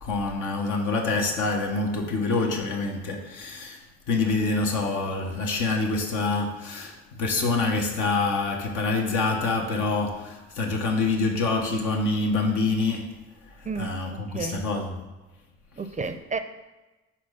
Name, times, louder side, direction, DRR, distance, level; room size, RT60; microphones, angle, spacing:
voice 1, 0.0-3.8 4.1-13.1 13.8-14.9, left 3 dB, 75° left, 1 dB, 1.1 m, -26 dB
voice 2, 13.6-14.6 15.8-16.4, right 4 dB, 25° right, 9 dB, 0.5 m, -32 dB
4.4 x 4.2 x 5.0 m, 1.1 s
supercardioid pair, 60°, 31 cm